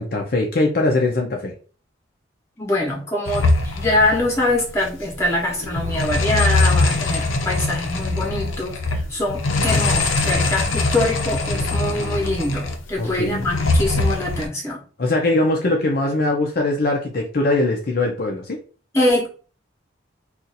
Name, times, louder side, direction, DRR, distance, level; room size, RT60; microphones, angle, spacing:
voice 1, 0.0-1.5 13.0-13.5 15.0-18.6, left 2 dB, 45° left, 0 dB, 0.5 m, -21 dB
voice 2, 2.6-14.8 18.9-19.3, left 1 dB, 15° left, -2 dB, 0.9 m, -23 dB
sound 1, 3.3-4.9 5.1-5.3 5.6-12.7 13.1-14.5, left 2 dB, 85° left, 0.6 m, -22 dB
2.5 x 2.4 x 4.0 m, 0.39 s
head